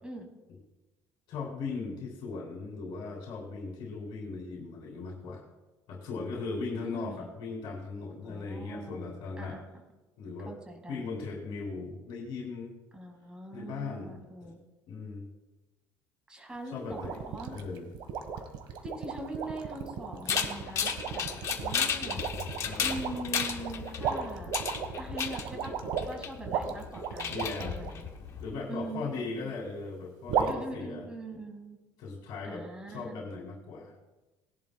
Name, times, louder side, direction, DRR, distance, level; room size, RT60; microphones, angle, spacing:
voice 1, 1.3-5.4 5.9-9.6 10.2-10.5 10.9-12.8 13.5-14.2 14.4-14.5 14.9-15.3 16.7-17.2 17.5-17.9 22.6-23.0 27.3-27.7 28.4-31.1 32.0-34.1, left 4 dB, 55° left, -2 dB, 3.1 m, -38 dB
voice 2, 6.7-7.4 8.2-9.0 9.4-9.7 10.5-11.1 12.9-14.6 16.3-17.5 18.8-22.2 22.8-24.5 24.9-25.8 26.1-28.1 28.7-29.0 29.3-29.5 30.5-31.8 32.4-33.2, right 1 dB, 10° right, 2 dB, 2.0 m, -42 dB
sound 1, 16.9-27.9 30.3-30.5, right 7 dB, 65° right, 1.5 m, -35 dB
sound 2, 20.3-28.5, left 7 dB, 35° left, 1.1 m, -34 dB
19.5 x 11.0 x 2.3 m, 1.1 s
cardioid pair, 170°, 9 cm